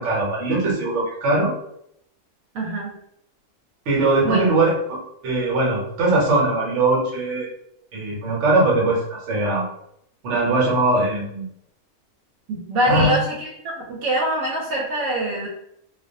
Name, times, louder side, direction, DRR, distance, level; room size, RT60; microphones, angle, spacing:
voice 1, 0.0-1.5 3.9-7.5 7.9-9.6 10.2-11.5 12.9-13.1, right 2 dB, 60° right, -2 dB, 1.1 m, -21 dB
voice 2, 2.5-2.9 4.2-4.4 12.5-15.5, right 1 dB, 85° right, -2 dB, 1.1 m, -24 dB
2.4 x 2.2 x 2.6 m, 0.75 s
omnidirectional pair, 1.5 m